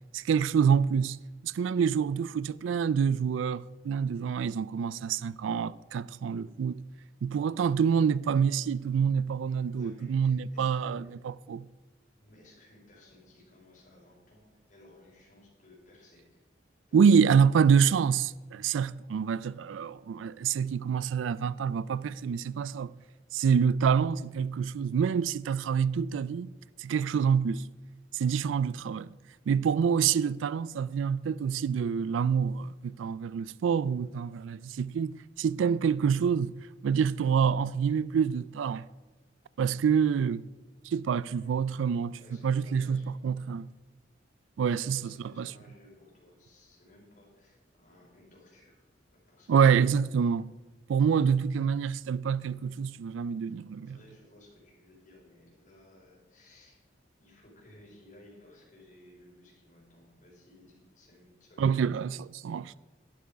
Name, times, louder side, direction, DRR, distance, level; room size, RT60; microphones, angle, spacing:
voice 1, 0.1-1.2 1.4-6.8 7.2-11.7 16.9-22.9 23.3-26.5 26.8-27.6 28.1-29.1 29.5-36.6 36.8-38.8 39.6-40.5 40.9-42.2 42.4-43.7 44.6-45.5 49.5-50.5 50.9-54.0 61.6-62.8, right 7 dB, 90° right, 0.3 m, -27 dB
voice 2, 9.7-10.9 12.2-16.4 16.9-17.4 41.3-41.6 42.2-43.4 44.9-48.9 49.1-49.9 53.8-56.8 57.2-61.7, left 1 dB, 40° left, 4.7 m, -57 dB
11.5 x 10.5 x 5.1 m
head